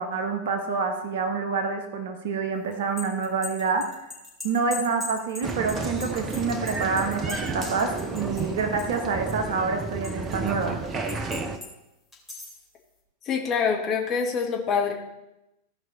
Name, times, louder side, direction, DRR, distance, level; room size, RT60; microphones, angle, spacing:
voice 1, 0.0-4.0 4.4-10.8, right 4 dB, 55° right, 6 dB, 1.3 m, -27 dB
sound 1, 2.7-9.0 9.3-10.5 11.1-11.7 12.1-12.6, left 2 dB, 5° left, 3.1 m, -39 dB
Applause, 5.4-11.6, right 3 dB, 25° right, 0.9 m, -32 dB
voice 2, 13.3-14.9, left 6 dB, 30° left, 0 dB, 1.9 m, -25 dB
16.0 x 5.4 x 4.2 m, 0.93 s
figure-of-eight pair, 90°, 0 cm